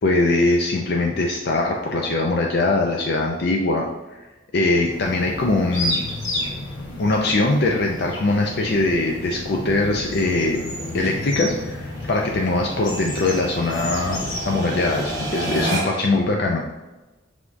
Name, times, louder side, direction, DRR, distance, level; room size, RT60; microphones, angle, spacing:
voice 1, 0.0-3.9 4.5-6.0 7.0-10.6 10.9-14.2 14.5-16.6, left 2 dB, 55° left, 1 dB, 0.4 m, -21 dB
sound 1, 4.8-15.6, left 1 dB, 80° left, 1.0 m, -31 dB
sound 2, 6.6-16.2, right 2 dB, 20° right, 0.9 m, -35 dB
5.0 x 3.4 x 2.5 m, 1.1 s
head